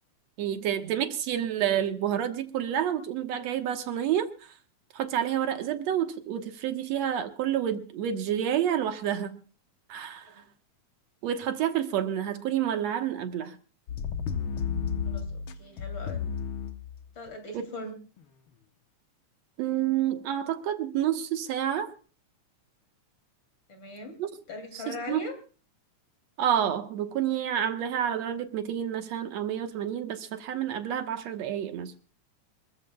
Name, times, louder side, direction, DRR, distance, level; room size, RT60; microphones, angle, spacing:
voice 1, 0.4-4.3 4.9-9.4 9.9-10.3 11.2-13.6 17.5-17.6 19.6-21.9 24.2-24.3 24.7-25.2 26.4-31.9, right 10 dB, 65° right, 2.2 m, -29 dB
sound 1, 13.9-17.3 18.2-18.3, left 7 dB, 65° left, 1.3 m, -32 dB
voice 2, 15.0-16.2 17.2-17.9 23.7-24.2 24.5-25.3, left 2 dB, 40° left, 3.4 m, -40 dB
26.5 x 14.5 x 2.3 m
omnidirectional pair, 3.5 m